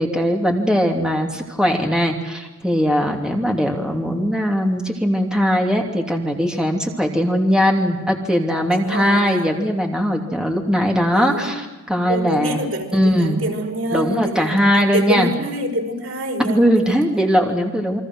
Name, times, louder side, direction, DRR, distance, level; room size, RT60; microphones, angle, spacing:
voice 1, 0.0-12.6 12.9-13.4 13.9-15.3 16.4-18.0, equal, 5° right, 1 dB, 2.9 m, -20 dB
voice 2, 8.7-9.5 11.1-11.6 12.1-17.0, right 1 dB, 90° right, 2 dB, 5.3 m, -26 dB
29.0 x 24.0 x 6.3 m, 1.1 s
head